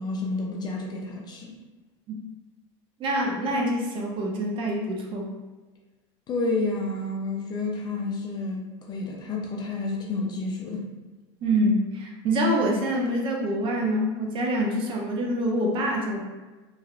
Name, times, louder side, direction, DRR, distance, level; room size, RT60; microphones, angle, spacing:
voice 1, 0.0-1.6 6.3-10.9, left 3 dB, 25° left, 0 dB, 0.4 m, -30 dB
voice 2, 3.0-5.3 11.4-16.3, equal, 35° right, 0 dB, 0.5 m, -25 dB
3.2 x 2.3 x 2.3 m, 1.2 s
supercardioid pair, 135°, 16 cm